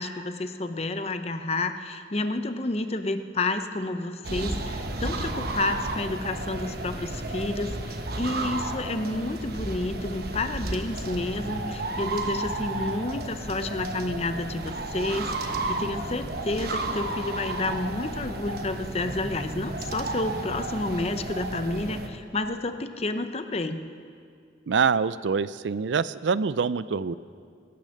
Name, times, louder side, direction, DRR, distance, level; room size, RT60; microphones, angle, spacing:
voice 1, 0.0-23.8, left 2 dB, 35° left, 9 dB, 0.8 m, -30 dB
sound 1, 4.2-22.1, right 2 dB, 60° right, 1.2 m, -32 dB
voice 2, 24.7-27.1, right 5 dB, 85° right, 16 dB, 0.5 m, -25 dB
22.0 x 10.0 x 6.5 m, 2.3 s
head